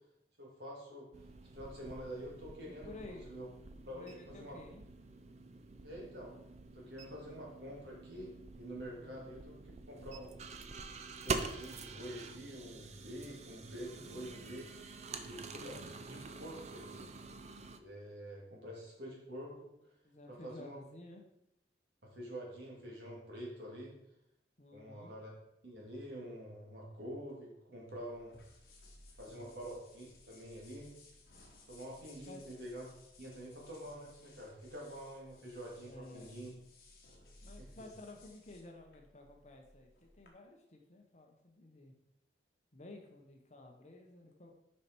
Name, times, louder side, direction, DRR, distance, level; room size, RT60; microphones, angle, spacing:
voice 1, 0.4-1.1 1.5-3.5 3.9-4.6 5.8-6.3 6.7-9.6 9.9-10.3 11.2-14.6 15.1-17.1 17.8-19.7 20.3-20.8 22.0-23.9 24.7-25.3 25.6-28.3 29.2-30.9 31.7-32.9 33.2-36.5 37.6-37.7, equal, 65° right, -3 dB, 2.4 m, -47 dB
Vending Machine - hot drink, 1.1-17.8, right 4 dB, 35° right, 0.5 m, -46 dB
voice 2, 2.7-3.3 3.9-4.8 9.0-9.3 13.9-14.5 20.0-21.2 24.6-25.1 29.3-29.7 32.3-32.4 35.8-36.4 37.4-41.9 42.7-44.5, left 2 dB, 40° left, 2 dB, 0.9 m, -53 dB
sound 1, 27.9-40.3, left 2 dB, 55° left, 1.4 m, -60 dB
6.7 x 5.4 x 4.5 m, 0.82 s
head